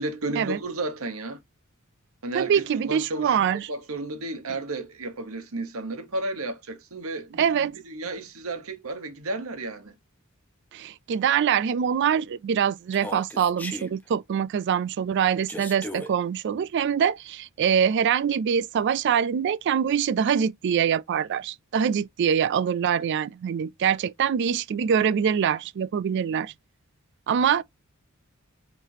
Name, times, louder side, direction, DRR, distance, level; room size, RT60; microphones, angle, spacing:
voice 1, 0.0-1.4 2.2-9.9, right 2 dB, 75° right, 1.0 m, -33 dB
voice 2, 2.3-3.6 7.4-7.7 10.7-26.5 27.3-27.6, right 8 dB, 55° right, 0.3 m, -24 dB
Human voice, 12.9-13.9 15.5-16.1, left 1 dB, 10° left, 0.8 m, -36 dB
4.7 x 3.3 x 2.7 m
head